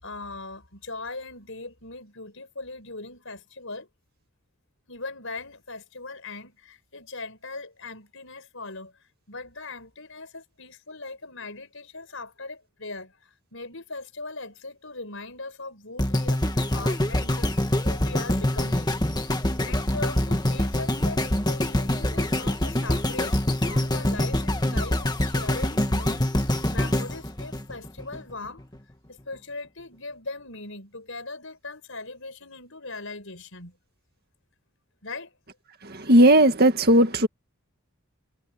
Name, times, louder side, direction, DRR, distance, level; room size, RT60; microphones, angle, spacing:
voice 1, 0.0-3.9 4.9-8.9 9.3-17.6 17.8-28.6 29.1-33.8 35.0-35.3, left 3 dB, 65° left, 5.9 m, -39 dB
sound 1, 16.0-28.2 28.7-28.8, left 1 dB, 20° left, 1.8 m, -25 dB
voice 2, 35.9-37.3, right 1 dB, 45° right, 2.1 m, -17 dB
head